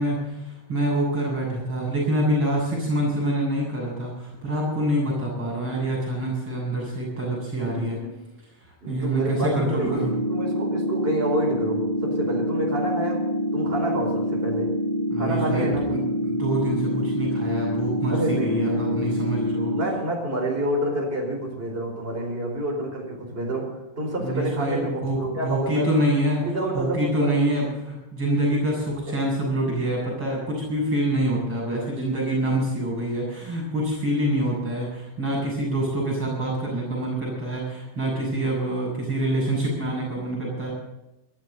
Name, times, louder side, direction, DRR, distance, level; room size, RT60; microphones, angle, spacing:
voice 1, 0.0-8.0 8.9-10.1 15.1-19.7 24.2-26.5 26.7-40.7, right 1 dB, 35° right, -4 dB, 8.0 m, -26 dB
voice 2, 7.5-8.1 8.8-13.3 13.5-14.7 15.2-16.1 18.1-19.2 19.7-25.9 26.4-27.6 29.1-29.2, right 1 dB, 15° right, 1 dB, 4.6 m, -28 dB
sound 1, 9.8-19.8, left 1 dB, 55° left, 4.3 m, -26 dB
22.5 x 13.5 x 4.0 m, 0.95 s
omnidirectional pair, 4.1 m